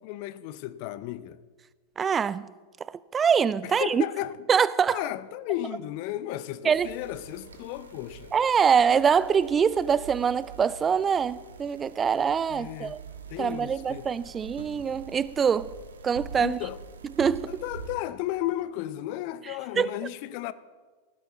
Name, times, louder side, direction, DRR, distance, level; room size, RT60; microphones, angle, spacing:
voice 1, 0.0-1.4 3.6-4.3 4.9-8.3 12.5-13.0 13.3-14.1 16.4-16.8 17.5-20.5, left 14 dB, 45° left, 0.7 m, -34 dB
voice 2, 2.0-2.5 3.1-4.0 4.5-5.0 6.6-6.9 8.3-13.0 13.4-15.7 16.0-16.6 17.2-17.6 19.8-19.9, right 7 dB, 20° right, 0.5 m, -24 dB
sound 1, 6.7-17.9, right 4 dB, 70° right, 1.5 m, -45 dB
Wind instrument woodwind instrument, 7.3-11.7, left 1 dB, 75° left, 4.2 m, -54 dB
18.5 x 15.0 x 4.1 m
figure-of-eight pair, 90°, 0 cm